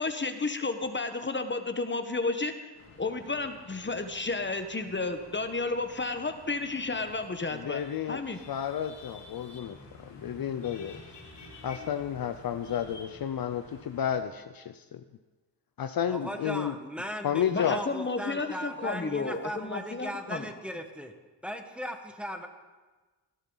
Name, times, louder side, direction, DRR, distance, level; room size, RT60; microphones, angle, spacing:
voice 1, 0.0-2.7 3.0-7.8 8.1-8.4 17.5-20.5, left 3 dB, 25° left, 8 dB, 1.2 m, -32 dB
sound 1, 2.7-14.2, left 2 dB, 70° left, 3.7 m, -51 dB
voice 2, 7.5-8.2 8.5-11.0 11.6-15.0 15.8-16.7 17.2-17.8, left 9 dB, 55° left, 10 dB, 0.7 m, -32 dB
voice 3, 16.1-21.1 21.4-22.5, equal, ahead, 5 dB, 1.6 m, -38 dB
18.5 x 11.0 x 4.0 m, 1.3 s
cardioid pair, 70°, 43 cm